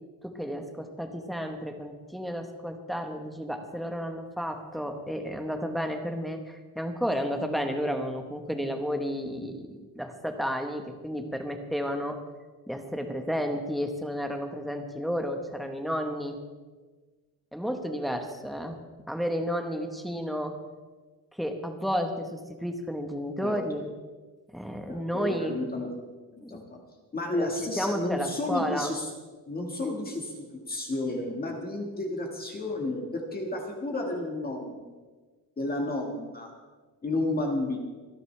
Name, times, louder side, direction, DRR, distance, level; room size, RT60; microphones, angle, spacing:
voice 1, 0.2-12.2 12.7-16.4 17.5-18.8 19.1-20.5 21.3-23.9 24.5-25.5 26.4-26.6 27.3-28.9, equal, ahead, 4 dB, 1.1 m, -32 dB
voice 2, 24.9-25.9 26.3-26.8 27.1-29.1 29.5-34.9 35.6-36.5 37.0-37.8, left 2 dB, 25° left, 0 dB, 1.6 m, -32 dB
25.5 x 10.5 x 3.3 m, 1.3 s
cardioid pair, 170°, 40 cm